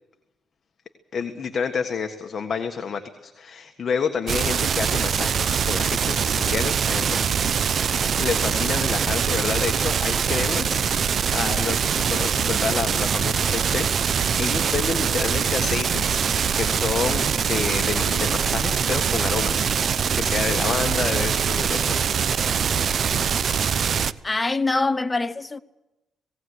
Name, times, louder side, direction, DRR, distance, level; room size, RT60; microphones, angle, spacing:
voice 1, 1.1-7.2 8.2-16.2 16.6-22.1, left 6 dB, 45° left, 1.6 m, -29 dB
sound 1, 4.3-24.1, right 7 dB, 55° right, 0.7 m, -23 dB
voice 2, 24.2-25.6, left 3 dB, 20° left, 0.9 m, -24 dB
19.0 x 18.0 x 8.2 m
cardioid pair, 90°, 0 cm